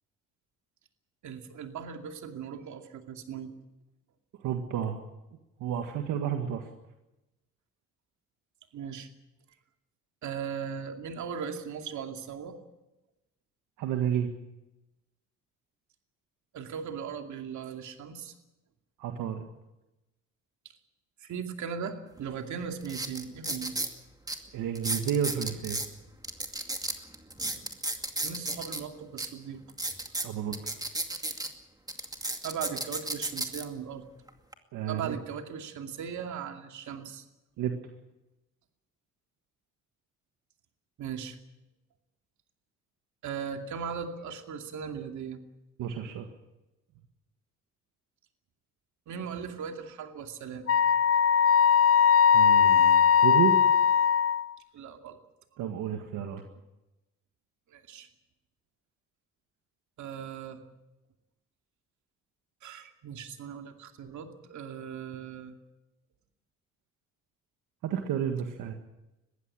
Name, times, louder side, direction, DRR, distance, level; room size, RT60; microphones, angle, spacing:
voice 1, 1.2-3.5 8.7-9.1 10.2-12.6 16.5-18.3 21.2-23.8 28.2-29.6 32.4-34.0 34.9-37.2 41.0-41.4 43.2-45.4 49.1-50.7 54.7-55.2 57.7-58.1 60.0-60.6 62.6-65.6, right 7 dB, 75° right, 5 dB, 2.6 m, -38 dB
voice 2, 4.4-5.0 5.6-6.7 13.8-14.3 19.0-19.5 24.5-25.8 30.2-30.7 34.7-35.2 37.6-37.7 45.8-46.3 52.3-53.6 55.6-56.4 67.8-68.7, right 9 dB, 90° right, 5 dB, 1.8 m, -31 dB
sound 1, 22.2-22.3 22.8-23.9 24.3-24.4 24.7-25.9 26.2-28.8 29.2-29.3 29.7-31.5 31.9-33.6 34.3-34.5, right 2 dB, 10° right, 2.4 m, -33 dB
Wind instrument woodwind instrument, 50.7-54.5, left 7 dB, 50° left, 0.7 m, -20 dB
21.5 x 15.5 x 8.9 m, 0.98 s
cardioid pair, 90°, 30 cm